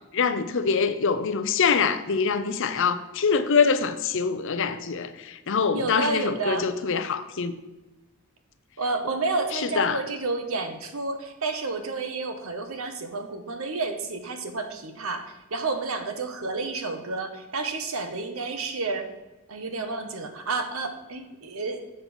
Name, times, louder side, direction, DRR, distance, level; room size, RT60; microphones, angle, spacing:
voice 1, 0.0-7.6 9.5-10.0, left 5 dB, 60° left, 0.6 m, -24 dB
voice 2, 5.7-6.7 8.8-19.1 19.5-21.8, right 3 dB, 70° right, 1.1 m, -30 dB
7.5 x 5.4 x 6.0 m
head